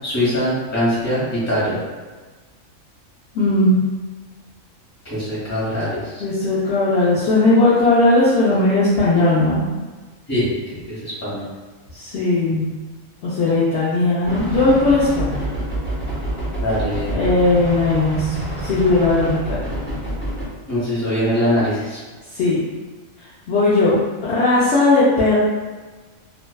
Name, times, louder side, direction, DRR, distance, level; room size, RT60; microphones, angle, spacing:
voice 1, 0.0-1.8 5.1-6.2 10.3-11.4 16.6-17.2 20.7-22.0, equal, 15° left, -10 dB, 0.9 m, -22 dB
voice 2, 3.3-3.8 6.2-9.7 11.9-12.7 13.2-15.4 17.1-19.6 22.4-22.6 23.5-25.4, left 2 dB, 65° left, -9 dB, 0.8 m, -17 dB
sound 1, 14.2-20.5, right 1 dB, 35° left, 1.2 m, -27 dB
2.6 x 2.2 x 2.2 m, 1.3 s
omnidirectional pair, 1.4 m